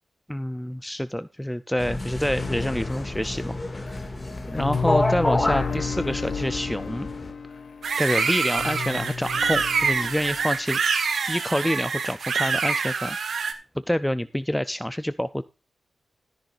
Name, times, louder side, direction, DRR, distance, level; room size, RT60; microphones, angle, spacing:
voice 1, 0.3-4.0 4.5-7.1 8.0-10.8 11.3-13.2 13.9-15.4, equal, 5° left, 12 dB, 0.4 m, -27 dB
sound 1, 1.8-7.3, left 2 dB, 20° left, 2.1 m, -29 dB
sound 2, 2.4-10.6, left 5 dB, 75° left, 1.4 m, -32 dB
sound 3, 7.8-13.5, right 5 dB, 80° right, 1.7 m, -25 dB
13.5 x 10.5 x 2.5 m, 0.32 s
wide cardioid pair, 115°, 0 cm